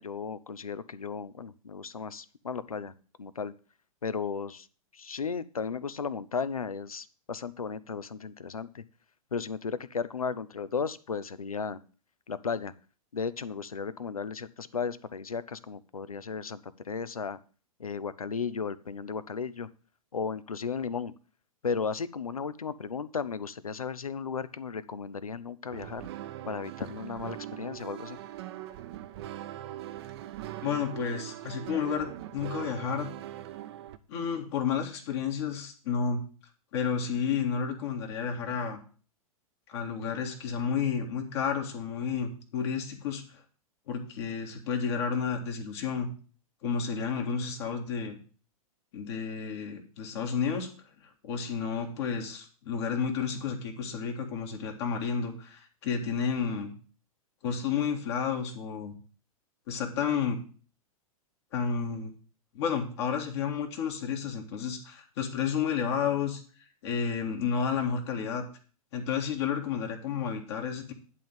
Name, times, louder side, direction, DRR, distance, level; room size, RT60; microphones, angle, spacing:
voice 1, 0.0-3.5 4.0-4.7 4.9-8.8 9.3-11.8 12.3-12.7 13.1-17.4 17.8-19.7 20.1-21.1 21.6-26.1 26.4-28.2, left 5 dB, 75° left, 16 dB, 0.6 m, -35 dB
sound 1, 25.7-34.0, right 13 dB, 45° right, 0.7 m, -41 dB
voice 2, 30.6-33.1 34.1-36.2 36.7-38.8 39.7-43.4 43.9-46.1 46.6-48.2 48.9-50.7 51.2-56.7 57.4-58.9 59.7-60.4 61.5-62.1 62.5-66.4 66.8-68.4 68.9-70.9, left 6 dB, 50° left, 2 dB, 1.8 m, -31 dB
11.0 x 3.8 x 7.4 m, 0.38 s
figure-of-eight pair, 100°, 18 cm